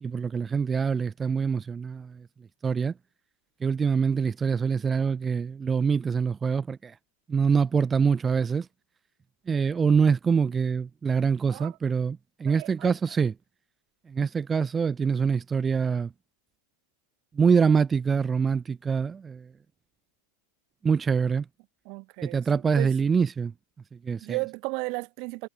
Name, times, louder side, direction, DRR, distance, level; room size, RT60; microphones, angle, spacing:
voice 1, 0.0-2.3 2.6-2.9 3.6-6.9 7.3-8.7 9.5-13.3 14.1-16.1 17.3-19.5 20.8-21.4 22.2-23.5 24.0-24.4, right 6 dB, 15° right, 0.7 m, -25 dB
voice 2, 11.4-11.8 12.5-12.9 21.8-22.4 22.8-22.9 24.2-25.5, right 31 dB, 45° right, 1.3 m, -34 dB
figure-of-eight pair, 90°, 0 cm